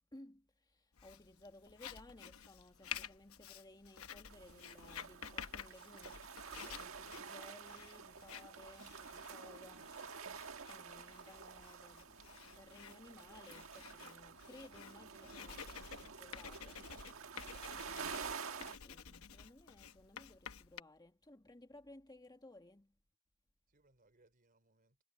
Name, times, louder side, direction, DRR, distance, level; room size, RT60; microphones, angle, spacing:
voice 1, 0.0-10.0 10.6-16.8 17.6-23.0, left 1 dB, 20° left, 1.8 m, -59 dB
Writing, 1.0-20.8, left 8 dB, 90° left, 1.0 m, -52 dB
sound 1, 4.3-18.8, right 6 dB, 70° right, 1.6 m, -49 dB
voice 2, 17.1-17.4 23.7-25.0, right 2 dB, 40° right, 3.5 m, -73 dB
head